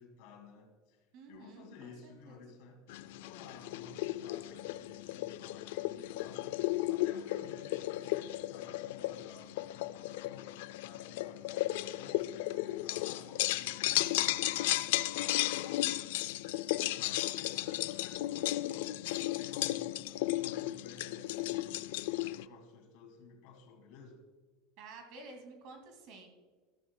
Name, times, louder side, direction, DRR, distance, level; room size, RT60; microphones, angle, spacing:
voice 1, 0.0-15.9 17.0-24.2, left 5 dB, 65° left, 4 dB, 2.2 m, -54 dB
voice 2, 1.1-2.4 24.8-26.3, right 3 dB, 50° right, 4 dB, 2.2 m, -51 dB
sound 1, 2.9-22.4, left 16 dB, 80° left, 0.3 m, -35 dB
14.0 x 12.5 x 2.2 m, 1.4 s
cardioid pair, 160°, 0 cm